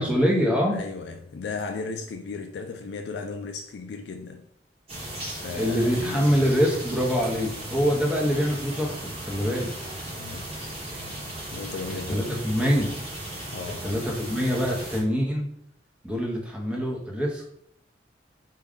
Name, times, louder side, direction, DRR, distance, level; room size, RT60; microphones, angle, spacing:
voice 1, 0.0-0.8 5.5-9.7 11.9-12.9 13.8-15.5 16.0-17.4, equal, 5° right, 0.7 m, -25 dB
voice 2, 0.7-4.5 5.4-6.3 10.1-10.5 11.5-12.8 13.5-13.9, left 4 dB, 70° left, 0.3 m, -36 dB
sound 1, 4.9-15.0, right 1 dB, 35° right, 1.0 m, -36 dB
3.5 x 2.3 x 3.5 m
head